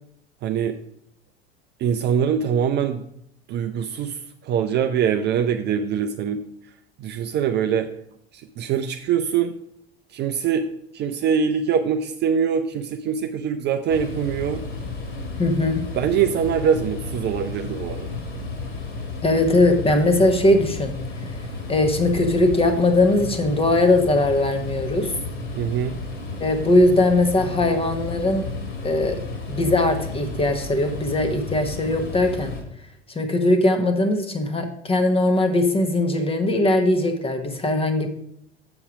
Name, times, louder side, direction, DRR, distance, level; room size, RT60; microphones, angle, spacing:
voice 1, 0.4-0.8 1.8-3.0 3.5-6.4 7.0-7.9 8.6-9.5 10.1-10.7 10.9-14.6 16.0-18.1 25.6-26.0, right 7 dB, 30° right, 7 dB, 0.5 m, -23 dB
sound 1, 13.9-32.6, left 3 dB, 35° left, 2.1 m, -33 dB
voice 2, 15.4-15.8 19.2-20.9 21.7-25.1 26.4-28.4 28.8-29.2 29.5-32.5 33.1-38.1, left 2 dB, 15° left, 7 dB, 1.2 m, -20 dB
7.0 x 7.0 x 4.9 m, 0.72 s
figure-of-eight pair, 75°, 33 cm